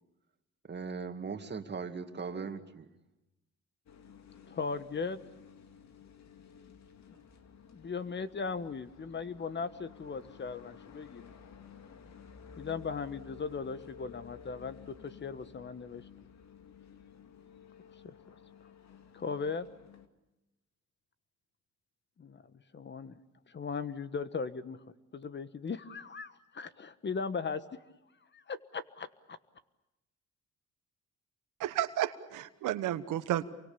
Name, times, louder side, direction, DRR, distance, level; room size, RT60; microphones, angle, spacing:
voice 1, 0.6-2.9, right 5 dB, 35° right, 7 dB, 2.4 m, -39 dB
sound 1, 3.9-20.1, left 7 dB, 65° left, 2.5 m, -53 dB
voice 2, 4.5-5.2 7.7-11.3 12.6-16.0 18.0-18.1 19.1-19.7 22.2-22.4 22.7-23.2 23.5-24.8 25.1-27.6 28.3-29.4, left 5 dB, 35° left, 12 dB, 1.4 m, -38 dB
voice 3, 31.6-33.5, right 12 dB, 90° right, 10 dB, 1.3 m, -32 dB
29.0 x 24.0 x 7.0 m, 0.95 s
cardioid pair, 90°, 30 cm